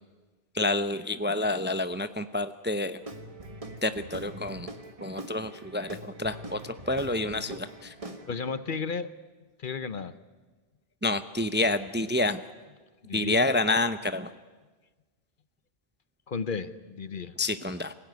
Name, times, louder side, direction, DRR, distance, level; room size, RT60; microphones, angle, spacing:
voice 1, 0.5-3.0 3.8-4.7 5.0-7.9 11.0-12.4 13.1-14.3 17.4-17.9, left 2 dB, 15° right, 11 dB, 0.6 m, -28 dB
Guitar / Drum, 3.0-8.6, right 1 dB, 35° right, 1.6 m, -43 dB
voice 2, 8.3-9.1 9.6-10.2 13.0-13.4 16.3-17.3, left 5 dB, 55° left, 14 dB, 1.0 m, -33 dB
25.0 x 16.5 x 9.5 m, 1.3 s
omnidirectional pair, 1.1 m